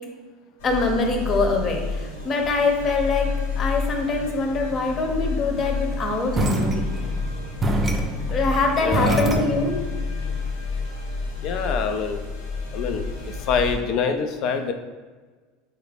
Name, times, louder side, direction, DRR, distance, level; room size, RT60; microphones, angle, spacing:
sound 1, 0.6-13.8, left 4 dB, 85° left, 1.3 m, -30 dB
voice 1, 0.6-6.9 8.3-9.8, left 3 dB, 40° left, 2 dB, 0.8 m, -24 dB
sound 2, 6.3-9.8, right 2 dB, 20° right, 0.5 m, -26 dB
voice 2, 8.8-9.4 11.4-12.2 12.7-13.1 13.4-14.7, left 6 dB, 55° left, 6 dB, 0.3 m, -25 dB
4.0 x 2.5 x 3.4 m, 1.4 s
hypercardioid pair, 90°, 0 cm